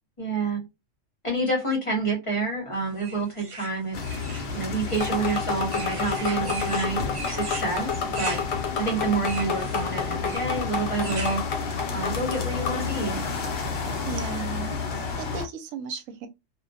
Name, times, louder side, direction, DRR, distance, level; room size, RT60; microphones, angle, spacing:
voice 1, 0.2-0.7 1.2-4.0 4.5-8.4 8.8-11.4 11.9-13.2, right 3 dB, 30° left, 0.8 m, -28 dB
sound 1, 3.0-11.4, right 4 dB, 55° right, 0.3 m, -39 dB
sound 2, 3.9-15.5, left 5 dB, 55° left, 0.8 m, -32 dB
sound 3, 5.0-12.9, left 6 dB, 85° left, 1.1 m, -31 dB
voice 2, 14.0-14.7 15.2-16.3, right 6 dB, 85° right, 1.0 m, -35 dB
2.3 x 2.2 x 2.6 m
omnidirectional pair, 1.3 m